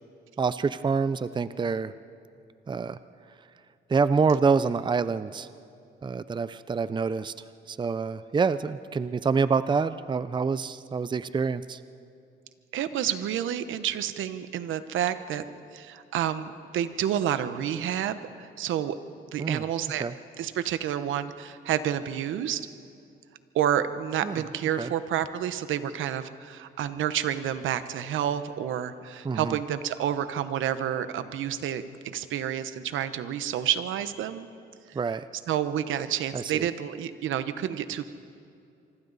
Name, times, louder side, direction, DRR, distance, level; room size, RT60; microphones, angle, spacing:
voice 1, 0.4-1.9 2.7-3.0 3.9-5.5 6.0-7.3 7.7-11.8 19.4-19.6 20.0-20.1 24.2-24.4 24.8-24.9 29.2-29.6 34.9-35.2 36.3-36.7, right 5 dB, 25° right, 14 dB, 0.6 m, -26 dB
voice 2, 12.7-15.4 15.7-19.0 19.3-20.0 20.4-22.7 23.5-34.5 34.9-35.0 35.5-38.0, right 10 dB, 80° right, 12 dB, 1.1 m, -29 dB
25.5 x 24.5 x 4.1 m, 2.4 s
cardioid pair, 90°, 20 cm